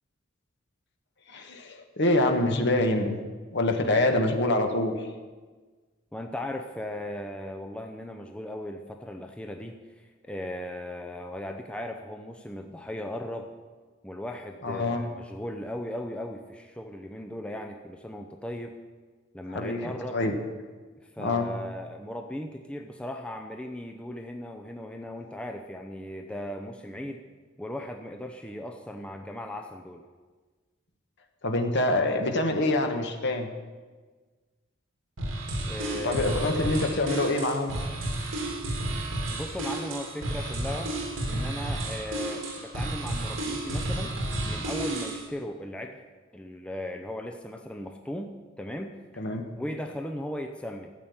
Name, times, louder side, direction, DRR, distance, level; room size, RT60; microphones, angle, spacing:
voice 1, 1.3-3.2 3.5-4.9 14.6-15.0 19.5-20.3 21.2-21.5 31.4-33.5 36.0-37.8 49.2-49.5, left 2 dB, 55° left, 4 dB, 1.4 m, -25 dB
voice 2, 6.1-13.5 14.0-18.8 19.3-20.2 21.2-27.2 27.6-30.0 35.6-36.6 39.3-40.9 41.3-46.0 46.3-49.3 49.6-50.9, left 1 dB, 5° left, 4 dB, 0.6 m, -37 dB
sound 1, 35.2-45.3, right 1 dB, 65° right, 3.0 m, -32 dB
13.0 x 7.5 x 8.6 m, 1.4 s
head